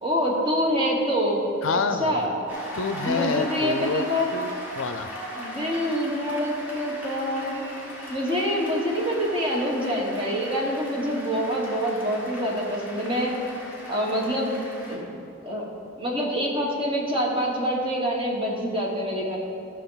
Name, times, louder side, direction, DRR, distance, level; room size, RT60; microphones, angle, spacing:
voice 1, 0.0-1.4 2.0-2.3 3.0-4.3 5.4-7.6 8.1-13.3 13.9-14.6 14.9-15.1 15.4-15.7 16.0-19.4, equal, 25° right, -3 dB, 1.6 m, -26 dB
voice 2, 1.6-2.2 2.7-4.0 4.3-5.1, left 4 dB, 70° left, 9 dB, 0.5 m, -27 dB
Cheering / Applause, 2.5-15.0, equal, 10° right, 1.7 m, -39 dB
14.5 x 6.3 x 4.0 m, 2.6 s
head